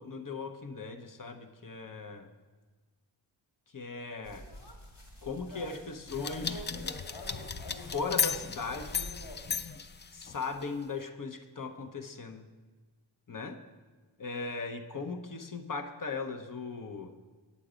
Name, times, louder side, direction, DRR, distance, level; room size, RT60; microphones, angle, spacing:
voice 1, 0.0-2.3 3.7-4.5 5.2-6.7 7.7-9.1 10.1-12.5 13.3-13.6 14.2-17.1, left 4 dB, 45° left, 6 dB, 0.8 m, -38 dB
sound 1, 4.2-9.4, equal, 70° left, 2.1 m, -46 dB
sound 2, 6.1-10.6, left 6 dB, 25° left, 0.3 m, -35 dB
8.4 x 7.1 x 5.0 m, 1.4 s
cardioid pair, 50°, 47 cm